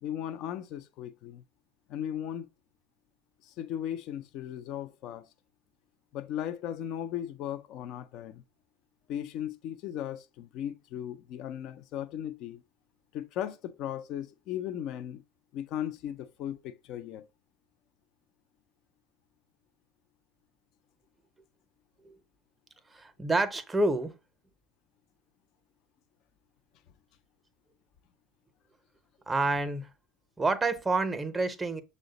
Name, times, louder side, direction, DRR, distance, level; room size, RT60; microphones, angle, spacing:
voice 1, 0.0-1.4 1.9-2.5 3.4-5.3 6.1-8.4 9.1-12.6 13.1-15.2 15.5-17.3, left 10 dB, 55° left, 0.4 m, -37 dB
voice 2, 22.9-24.1 29.3-29.9 30.4-31.8, right 2 dB, 15° right, 0.7 m, -28 dB
6.2 x 2.1 x 3.9 m
hypercardioid pair, 95°, 0 cm